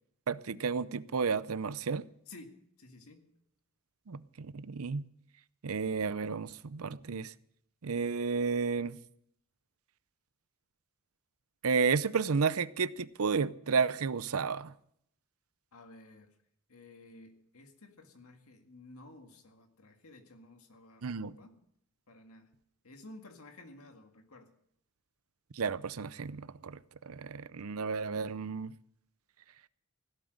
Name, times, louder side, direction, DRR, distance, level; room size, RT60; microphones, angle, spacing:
voice 1, 0.3-2.1 4.1-5.0 5.6-7.3 7.8-9.0 11.6-14.7 21.0-21.3 25.5-26.8 27.1-28.7, right 5 dB, 85° right, 0.6 m, -32 dB
voice 2, 2.3-3.3 15.7-16.3 16.7-21.6 22.1-22.5 22.8-24.5, left 2 dB, 90° left, 2.0 m, -53 dB
16.5 x 12.0 x 6.5 m
head